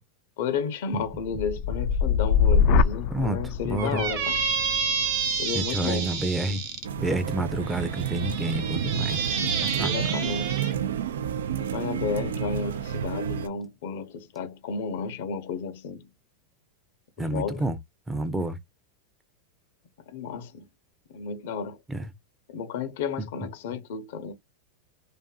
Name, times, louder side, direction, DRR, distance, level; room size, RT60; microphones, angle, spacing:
voice 1, 0.4-4.4 5.4-6.1 9.7-10.6 11.5-16.1 17.2-17.7 20.1-20.7 21.1-21.8 22.5-24.3, left 5 dB, 70° left, 0.7 m, -32 dB
sound 1, 1.0-9.1 9.5-10.0, left 6 dB, 50° left, 0.3 m, -27 dB
voice 2, 3.6-4.0 5.5-6.6 7.0-10.2 17.2-17.8 18.1-18.6 21.9-22.0, right 2 dB, 10° right, 0.5 m, -29 dB
Squeak, 3.8-6.8 7.7-10.7, right 6 dB, 65° right, 0.9 m, -29 dB
sound 2, 6.8-13.5, right 8 dB, 85° right, 0.3 m, -30 dB
2.6 x 2.5 x 2.2 m
hypercardioid pair, 110°, 0 cm